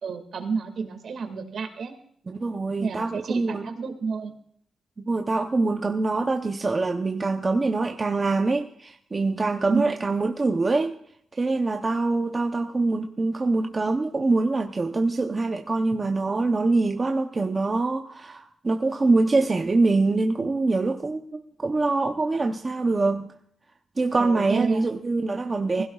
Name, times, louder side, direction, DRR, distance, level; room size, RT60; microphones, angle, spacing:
voice 1, 0.0-1.9 2.8-4.3 9.7-10.0 15.9-16.0 24.2-24.8 25.8-25.9, right 5 dB, 60° right, 2.0 m, -30 dB
voice 2, 2.3-3.7 5.0-10.9 11.3-23.3 24.0-25.8, right 3 dB, 25° right, 0.7 m, -24 dB
20.0 x 16.5 x 2.4 m
wide cardioid pair, 160°, 0 cm